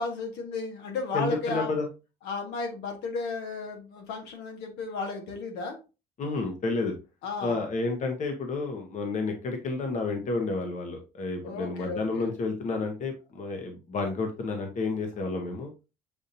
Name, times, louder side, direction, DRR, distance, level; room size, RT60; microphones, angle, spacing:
voice 1, 0.0-1.8 2.2-5.8 7.2-7.7 11.4-12.3, left 4 dB, 85° left, 3 dB, 1.4 m, -34 dB
voice 2, 1.1-1.9 6.2-6.9 7.4-15.7, left 3 dB, 45° left, 4 dB, 1.0 m, -30 dB
6.9 x 2.7 x 2.7 m, 0.29 s
cardioid pair, 110°, 17 cm